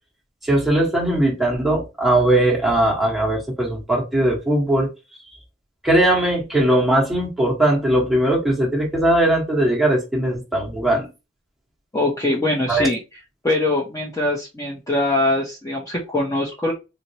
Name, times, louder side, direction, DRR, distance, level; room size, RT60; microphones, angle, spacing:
voice 1, 0.4-4.9 5.8-11.1 12.7-12.9, right 1 dB, ahead, 1.3 m, -19 dB
voice 2, 11.9-13.0 13.4-16.7, left 2 dB, 15° left, 0.7 m, -22 dB
4.4 x 2.1 x 2.8 m
head